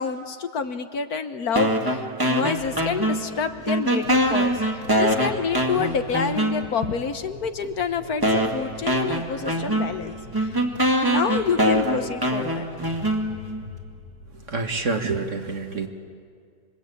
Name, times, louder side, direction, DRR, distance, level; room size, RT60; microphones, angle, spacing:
voice 1, 0.0-10.5 11.1-12.7, left 6 dB, 60° left, 9 dB, 1.5 m, -28 dB
sound 1, 1.6-3.4 3.7-6.9 7.6-7.7 8.2-13.6, right 1 dB, 10° right, 2.1 m, -24 dB
sound 2, 2.5-14.9, left 2 dB, 80° right, 6.9 m, -45 dB
voice 2, 14.3-15.9, right 4 dB, 45° right, 5 dB, 2.0 m, -27 dB
27.0 x 23.5 x 8.5 m, 2.2 s
omnidirectional pair, 1.9 m